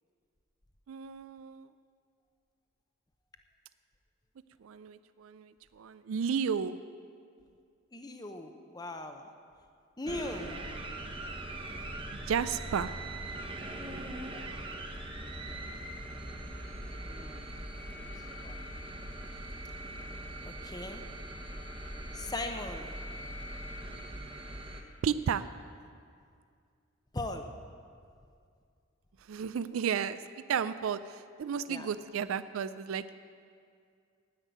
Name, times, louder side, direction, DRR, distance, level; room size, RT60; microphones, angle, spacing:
voice 1, 0.9-1.7 4.6-6.8 12.1-12.9 25.0-25.5 29.3-30.2 30.5-33.0, right 7 dB, 85° right, 14 dB, 0.4 m, -33 dB
voice 2, 7.9-9.3 10.0-10.5 11.7-11.9 16.9-17.4 17.9-18.6 20.4-21.0 22.1-23.0 27.1-27.5 31.7-31.9, left 2 dB, 20° left, 6 dB, 0.7 m, -40 dB
sound 1, 10.1-24.8, right 1 dB, 25° right, 1.0 m, -41 dB
10.0 x 9.2 x 9.2 m, 2.2 s
head